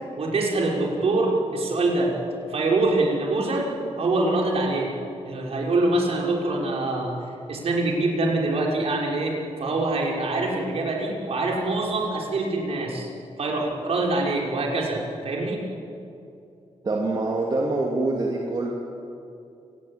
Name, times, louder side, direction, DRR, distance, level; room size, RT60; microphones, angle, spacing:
voice 1, 0.2-2.2 2.5-4.9 5.2-7.1 7.5-13.1 13.4-15.6, right 2 dB, 60° right, -1 dB, 5.5 m, -24 dB
voice 2, 16.8-18.7, right 2 dB, 40° right, -2 dB, 2.8 m, -25 dB
28.5 x 18.0 x 8.8 m, 2.6 s
wide cardioid pair, 145°, 12 cm